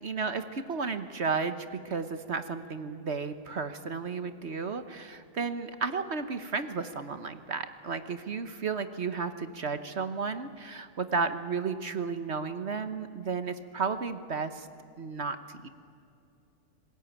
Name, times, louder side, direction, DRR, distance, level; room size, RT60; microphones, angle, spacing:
voice 1, 0.0-14.7 15.0-15.7, right 5 dB, 50° right, 10 dB, 1.2 m, -33 dB
27.0 x 20.0 x 9.0 m, 2.6 s
omnidirectional pair, 1.6 m